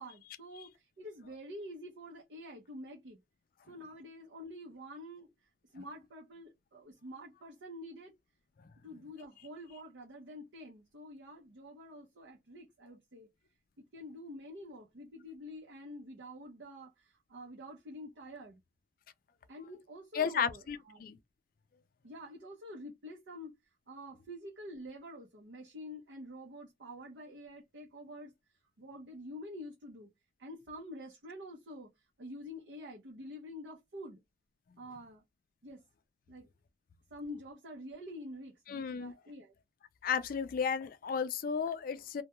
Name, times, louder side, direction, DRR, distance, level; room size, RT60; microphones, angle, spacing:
voice 1, 0.0-3.2 3.7-5.3 5.7-8.1 8.8-13.3 13.8-18.6 19.5-21.0 22.0-23.5 23.9-28.3 28.8-30.1 30.4-31.9 32.2-34.2 34.8-35.2 35.6-35.8 36.3-36.5 37.1-39.5, equal, 75° right, 0.6 m, -47 dB
voice 2, 20.1-21.2 38.7-39.1 40.0-42.2, left 6 dB, 50° left, 0.3 m, -33 dB
2.2 x 2.1 x 2.8 m
head